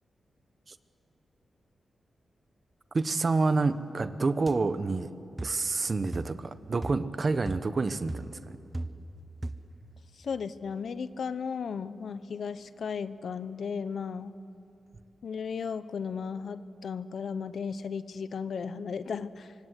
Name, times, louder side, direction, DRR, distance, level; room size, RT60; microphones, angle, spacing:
voice 1, 2.9-5.1 5.4-8.6, right 3 dB, 40° right, 12 dB, 1.0 m, -28 dB
sound 1, 4.5-4.6 5.4-5.7 6.1-6.5 6.8-7.1 7.5-7.8 8.1-9.2 9.4-9.8, right 2 dB, 15° right, 1.0 m, -38 dB
voice 2, 10.2-14.4 15.2-19.5, left 6 dB, 65° left, 14 dB, 0.8 m, -35 dB
25.5 x 25.0 x 8.2 m, 3.0 s
wide cardioid pair, 115°, 0 cm